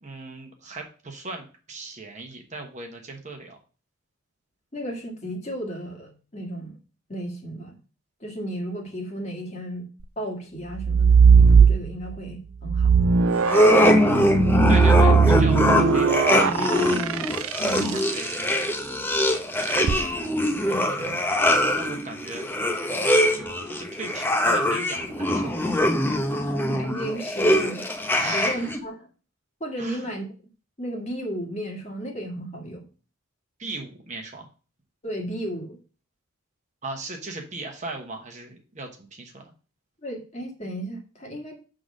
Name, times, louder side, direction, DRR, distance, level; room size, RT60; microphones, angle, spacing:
voice 1, 0.0-3.6 13.7-17.0 17.9-18.7 20.7-21.3 21.7-25.6 28.1-28.7 29.8-30.1 33.6-34.5 36.8-39.4, right 3 dB, 35° right, 3 dB, 1.1 m, -38 dB
voice 2, 4.7-6.8 7.1-7.8 8.2-9.9 10.2-13.0 17.6-18.0 20.6-21.2 26.6-27.9 28.2-29.1 29.6-30.3 30.8-32.8 35.0-35.8 40.0-41.6, right 1 dB, 30° left, 1 dB, 1.7 m, -34 dB
sound 1, 10.7-12.2 12.6-18.1 19.7-20.0, right 6 dB, 75° right, 0.4 m, -18 dB
sound 2, 13.4-28.8, left 1 dB, 10° left, 0.7 m, -22 dB
6.9 x 3.8 x 6.4 m, 0.36 s
head